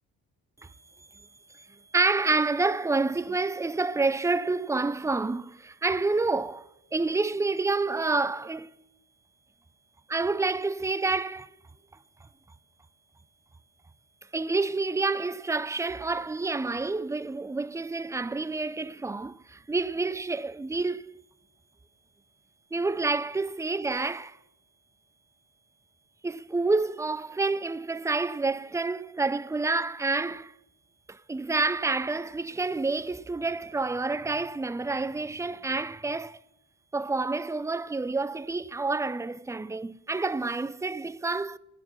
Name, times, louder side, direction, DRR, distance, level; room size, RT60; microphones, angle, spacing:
voice 1, 1.5-8.8 10.1-11.5 14.3-21.2 22.7-24.4 26.2-30.5 31.1-36.4 36.9-41.6, right 3 dB, 10° right, 0.4 m, -28 dB
24.0 x 9.5 x 3.1 m
cardioid pair, 95°, 35 cm